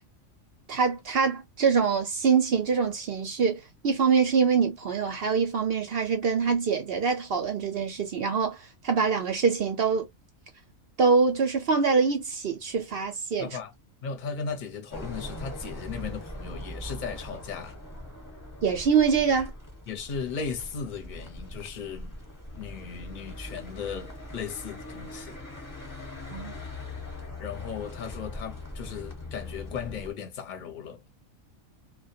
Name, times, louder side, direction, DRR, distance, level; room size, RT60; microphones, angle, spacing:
voice 1, 0.7-8.6 8.8-10.1 11.0-13.5 18.6-19.5 26.3-26.5, right 5 dB, 60° right, 0.6 m, -24 dB
voice 2, 13.4-13.7 14.0-17.8 19.9-22.2 22.6-25.4 27.4-31.1, left 6 dB, 45° left, 0.8 m, -36 dB
sound 1, 14.9-30.1, left 1 dB, 15° left, 1.0 m, -41 dB
2.2 x 2.2 x 2.7 m
omnidirectional pair, 1.4 m